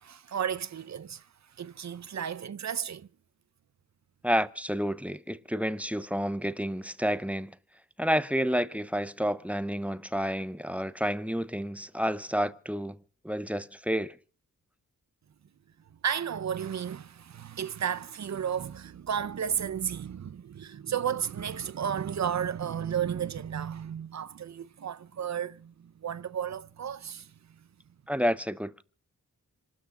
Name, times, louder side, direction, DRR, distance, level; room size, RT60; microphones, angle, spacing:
voice 1, 0.0-1.3 1.6-3.1 16.0-27.3, right 8 dB, 55° right, 0.7 m, -33 dB
voice 2, 4.2-7.6 8.0-13.0 13.2-14.2 28.1-28.8, equal, 5° right, 0.7 m, -30 dB
27.5 x 13.0 x 3.7 m
wide cardioid pair, 110°, 32 cm